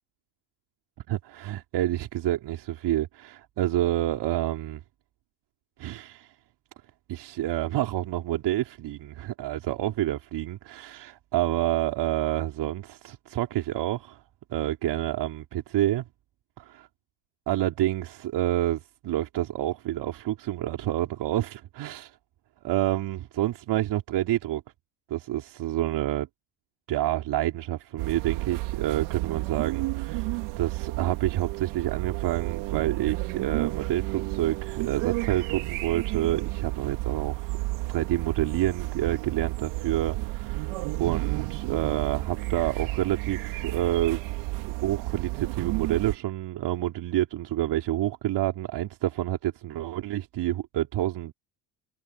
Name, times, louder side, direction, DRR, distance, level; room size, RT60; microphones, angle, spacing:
voice 1, 1.1-4.8 5.8-6.3 7.1-14.2 14.5-16.0 17.5-22.2 22.6-24.6 25.1-26.3 26.9-37.6 37.9-40.7 41.0-44.2 44.8-51.3, right 14 dB, 55° right, 4.2 m, -28 dB
sound 1, 28.0-46.2, right 21 dB, 75° right, 2.7 m, -32 dB
cardioid pair, 130°, 49 cm